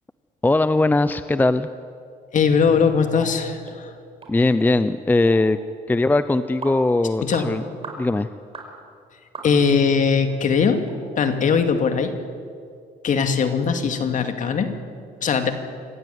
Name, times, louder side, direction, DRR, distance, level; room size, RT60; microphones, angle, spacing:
voice 1, 0.4-1.7 4.3-5.6 5.9-7.6 8.0-8.3, left 2 dB, 10° left, 13 dB, 0.6 m, -20 dB
voice 2, 2.3-3.9 7.2-7.5 9.4-10.8 11.1-12.1 13.0-14.7 15.2-15.5, left 6 dB, 50° left, 7 dB, 2.5 m, -20 dB
sound 1, 3.1-3.3 3.7-3.8 4.2-4.3 4.6-4.7 5.3-5.4 5.9-6.0 6.6-6.8 7.3-7.5 7.8-8.0 8.5-8.7 9.3-9.8 10.3-10.4 10.9-11.0 11.4-11.5, right 3 dB, 35° right, 5.0 m, -37 dB
26.0 x 15.0 x 9.5 m, 2.2 s
cardioid pair, 110°, 17 cm